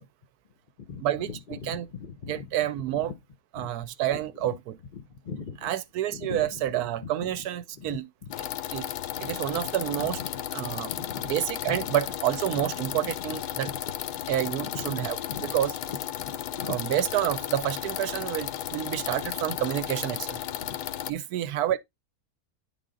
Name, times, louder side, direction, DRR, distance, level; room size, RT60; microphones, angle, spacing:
voice 1, 0.9-2.6 2.9-3.0 3.5-3.7 4.1-4.2 4.9-5.7 6.1-6.7 7.0-7.5 7.7-8.3 9.1-10.3 10.9-11.3 11.6-12.0 12.6-13.8 14.1-15.5 15.8-16.3 16.6-16.8 19.2-19.3 20.6-20.8, left 6 dB, 50° left, 0.6 m, -41 dB
voice 2, 2.3-3.1 3.5-4.8 5.6-8.0 8.7-8.9 9.2-10.2 10.5-10.9 11.3-13.7 14.3-15.7 16.7-20.4 21.1-21.8, right 12 dB, 80° right, 1.1 m, -29 dB
sound 1, 8.3-21.1, left 11 dB, 85° left, 1.2 m, -34 dB
9.3 x 3.7 x 3.8 m
omnidirectional pair, 1.6 m